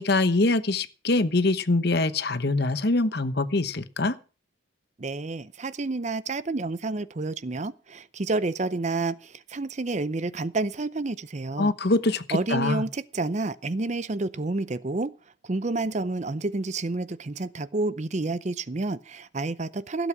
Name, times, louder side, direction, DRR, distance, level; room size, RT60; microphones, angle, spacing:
voice 1, 0.0-4.1 11.6-12.8, left 2 dB, 55° left, 1.0 m, -24 dB
voice 2, 5.0-11.7 12.3-15.1 15.4-20.1, right 3 dB, 35° right, 0.6 m, -29 dB
16.0 x 8.2 x 6.0 m
head